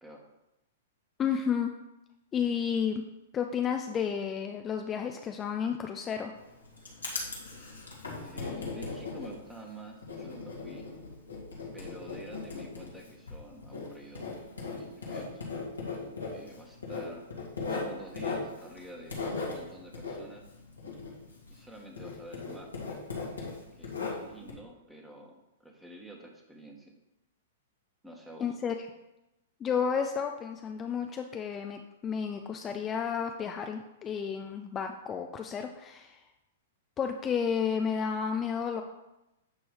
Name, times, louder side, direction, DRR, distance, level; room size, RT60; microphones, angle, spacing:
voice 1, 1.2-1.7 2.3-3.0 3.3-6.3 28.4-28.7 29.6-36.2 37.0-38.8, left 7 dB, 25° left, 5 dB, 0.5 m, -31 dB
Writing, 6.3-21.7 21.9-24.5, left 4 dB, 90° left, 2.2 m, -38 dB
voice 2, 8.2-10.9 11.7-14.3 14.8-15.4 15.9-17.2 17.6-19.2 19.5-20.4 21.5-22.7 23.8-26.9 28.0-28.5, right 1 dB, 5° right, 1 dB, 1.4 m, -48 dB
9.2 x 3.1 x 5.5 m, 0.94 s
hypercardioid pair, 115°, 0 cm